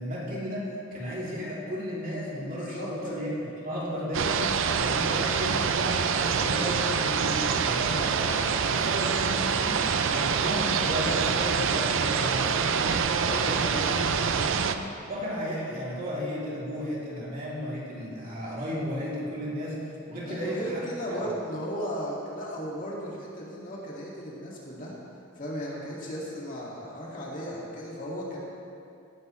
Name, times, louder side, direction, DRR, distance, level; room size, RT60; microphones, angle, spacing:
voice 1, 0.0-4.4 4.7-9.8 10.1-14.7 15.1-19.8 20.1-20.8 21.1-21.2, equal, 45° right, -6 dB, 3.2 m, -34 dB
voice 2, 2.6-2.9 4.9-5.1 13.6-13.9 14.2-14.5 20.3-24.9 25.4-28.4, equal, 40° left, -5 dB, 2.3 m, -36 dB
sound 1, 4.1-14.7, right 6 dB, 65° right, 0.5 m, -26 dB
17.0 x 10.5 x 3.3 m, 2.6 s
head